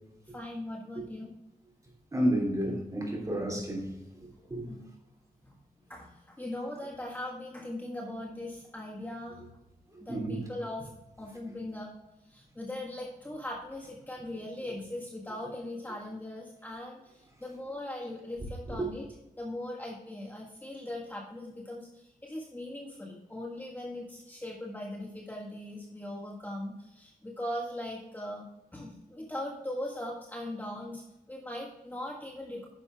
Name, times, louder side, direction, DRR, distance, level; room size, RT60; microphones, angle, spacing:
voice 1, 0.3-1.3 4.5-4.9 5.4-5.5 5.9-9.4 10.0-10.9 11.2-11.9 12.2-19.0 19.4-28.4 28.7-32.7, left 1 dB, 10° left, 1.5 m, -40 dB
voice 2, 2.1-3.9 4.5-4.6 10.1-10.4 18.7-18.9, right 1 dB, 25° right, 3.3 m, -30 dB
10.0 x 6.9 x 3.5 m
wide cardioid pair, 130°, 14 cm